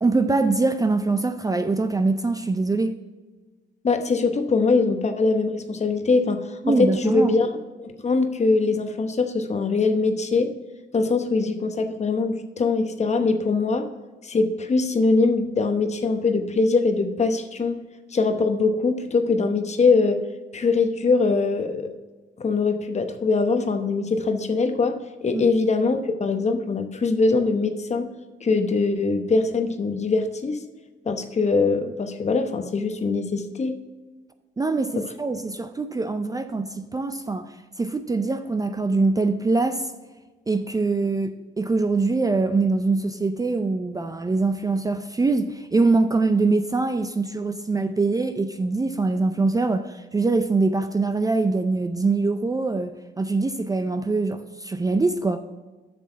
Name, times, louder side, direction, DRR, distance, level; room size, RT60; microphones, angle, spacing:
voice 1, 0.0-3.0 6.6-7.3 25.3-25.4 34.6-39.9 40.5-55.4, right 3 dB, 20° right, 9 dB, 0.5 m, -23 dB
voice 2, 3.8-7.5 7.8-10.5 10.9-13.9 14.2-17.8 18.1-20.2 20.5-21.9 22.4-28.1 28.4-30.6 31.0-33.7 34.9-35.0, left 3 dB, 35° left, 7 dB, 0.9 m, -22 dB
7.8 x 6.3 x 4.5 m, 1.3 s
cardioid pair, 90°, 20 cm